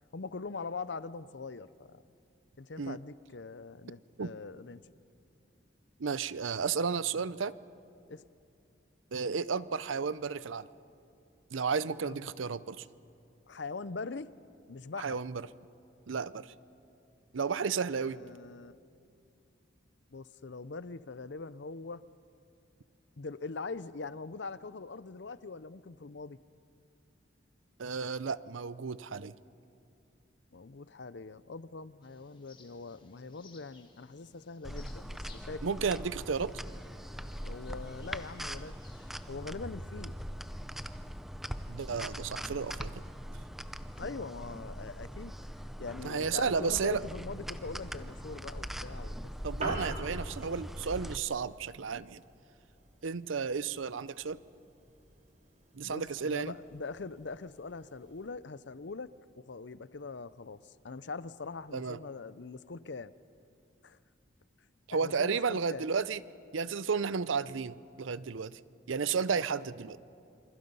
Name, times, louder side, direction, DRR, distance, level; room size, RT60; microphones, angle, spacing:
voice 1, 0.1-2.0 2.6-4.8 8.1-8.2 12.1-12.3 13.5-14.3 14.7-15.2 17.9-18.8 20.1-22.0 23.2-26.4 30.5-35.6 37.4-38.8 39.3-40.1 44.0-49.2 55.8-59.1 59.3-63.1 63.8-64.0 64.9-65.8, left 4 dB, 60° left, 16 dB, 0.6 m, -42 dB
voice 2, 6.0-7.5 9.1-10.7 11.5-12.9 15.0-15.4 16.1-16.5 17.3-18.2 27.8-29.3 35.6-36.5 41.7-42.9 46.0-47.0 49.4-52.2 53.0-54.4 55.7-56.5 61.7-62.0 64.9-66.2 66.5-68.6 68.9-70.0, right 5 dB, 80° right, 17 dB, 0.6 m, -33 dB
sound 1, 32.0-39.4, left 4 dB, 25° left, 2.0 m, -61 dB
sound 2, 34.6-51.2, equal, ahead, 0.6 m, -41 dB
Piano, 49.3-58.3, right 1 dB, 35° right, 4.1 m, -48 dB
27.5 x 26.5 x 5.5 m, 2.6 s
head